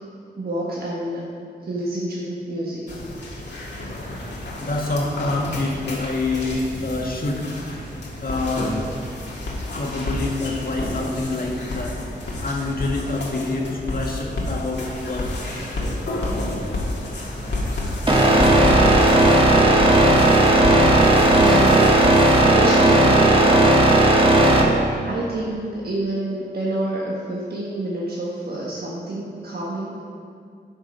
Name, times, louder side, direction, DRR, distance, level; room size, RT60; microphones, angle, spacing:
voice 1, 0.4-1.3 1.6-3.1 21.4-21.9 22.4-23.7 25.0-30.0, right 1 dB, 60° right, -5 dB, 1.3 m, -28 dB
sound 1, 2.9-22.4, left 1 dB, 75° left, 1.9 m, -29 dB
voice 2, 4.6-7.5 8.2-8.7 9.7-12.0 12.4-15.3, left 2 dB, 55° left, -1 dB, 1.7 m, -26 dB
sound 2, 18.1-24.6, right 1 dB, 30° right, 1.6 m, -15 dB
9.5 x 5.3 x 5.3 m, 2.3 s
cardioid pair, 65°, 18 cm